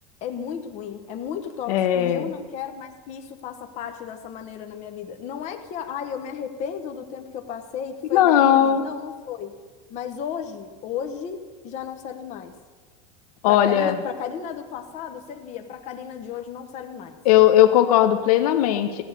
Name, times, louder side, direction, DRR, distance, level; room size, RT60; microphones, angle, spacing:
voice 1, 0.2-9.5 9.9-12.5 13.5-17.2, left 8 dB, 40° left, 6 dB, 1.1 m, -34 dB
voice 2, 1.7-2.2 8.1-8.9 13.4-14.0 17.2-19.0, left 11 dB, 80° left, 10 dB, 0.8 m, -18 dB
15.0 x 8.8 x 6.5 m, 1.4 s
supercardioid pair, 155°, 19 cm